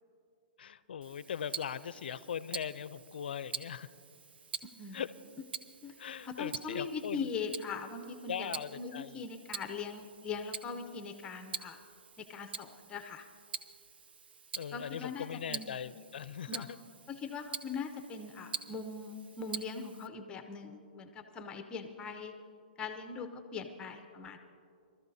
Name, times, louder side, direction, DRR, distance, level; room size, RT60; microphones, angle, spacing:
voice 1, 0.6-3.9 4.9-5.1 6.0-7.3 8.3-9.2 14.6-16.7, left 8 dB, 75° left, 16 dB, 0.5 m, -40 dB
Tick-tock, 1.0-20.1, right 6 dB, 75° right, 0.8 m, -46 dB
voice 2, 4.6-5.0 5.8-5.9 6.2-11.8 12.2-13.3 14.7-15.8 16.5-16.7 17.1-22.3 22.8-24.4, left 5 dB, 15° left, 7 dB, 0.7 m, -41 dB
25.5 x 13.5 x 2.7 m, 2.5 s
hypercardioid pair, 140°, 5 cm